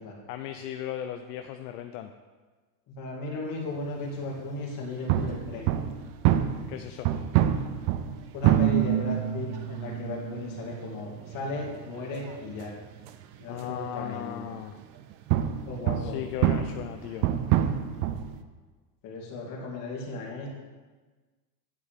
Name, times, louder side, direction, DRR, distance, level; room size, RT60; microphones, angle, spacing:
voice 1, 0.3-2.1 6.7-7.1 13.5-14.8 16.0-17.3, left 11 dB, 65° left, 7 dB, 0.7 m, -36 dB
voice 2, 2.9-5.8 8.3-12.7 13.4-14.4 15.7-16.2 19.0-20.5, left 2 dB, 40° left, -2 dB, 2.3 m, -35 dB
sound 1, 5.1-14.0 14.8-18.4, right 11 dB, 45° right, 0.6 m, -27 dB
9.5 x 8.2 x 3.6 m, 1.3 s
supercardioid pair, 155°, 50 cm